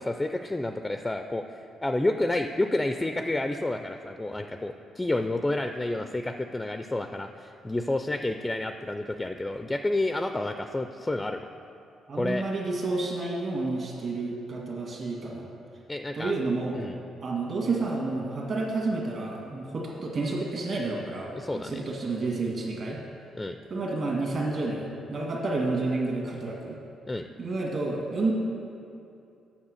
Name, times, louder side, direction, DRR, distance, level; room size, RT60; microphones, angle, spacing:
voice 1, 0.0-11.5 12.1-12.4 15.9-16.3 16.7-17.0 21.3-21.8 23.3-23.6 27.1-27.3, left 2 dB, 15° left, 7 dB, 0.3 m, -30 dB
voice 2, 12.1-15.5 16.1-16.8 17.2-23.0 23.7-26.8 27.4-28.3, right 3 dB, 50° right, -2 dB, 1.8 m, -30 dB
7.3 x 6.9 x 6.4 m, 2.6 s
cardioid pair, 90°, 0 cm